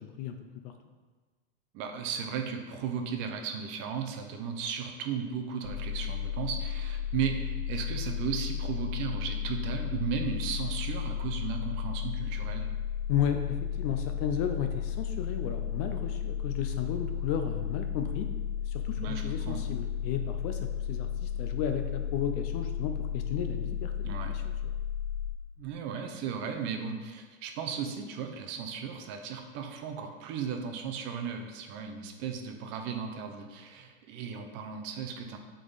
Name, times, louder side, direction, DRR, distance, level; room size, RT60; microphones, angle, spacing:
voice 1, 1.7-12.7 19.0-19.7 24.0-24.3 25.6-35.4, right 7 dB, 35° right, 5 dB, 0.7 m, -35 dB
sound 1, 5.6-25.3, left 9 dB, 70° left, 0.8 m, -34 dB
voice 2, 13.1-18.3 18.7-20.6 20.9-24.4, left 8 dB, 35° left, 7 dB, 0.5 m, -33 dB
7.7 x 3.8 x 4.0 m, 1.4 s
supercardioid pair, 140°, 33 cm